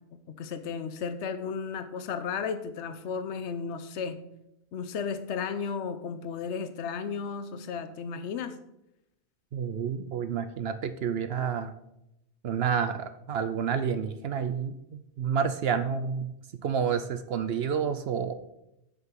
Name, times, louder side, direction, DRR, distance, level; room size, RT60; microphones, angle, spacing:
voice 1, 0.3-4.2 4.7-8.5, left 6 dB, 80° left, 11 dB, 1.0 m, -34 dB
voice 2, 9.5-11.7 12.4-16.3 16.6-18.3, right 7 dB, 70° right, 10 dB, 0.8 m, -29 dB
8.0 x 5.2 x 6.2 m, 0.84 s
omnidirectional pair, 1.2 m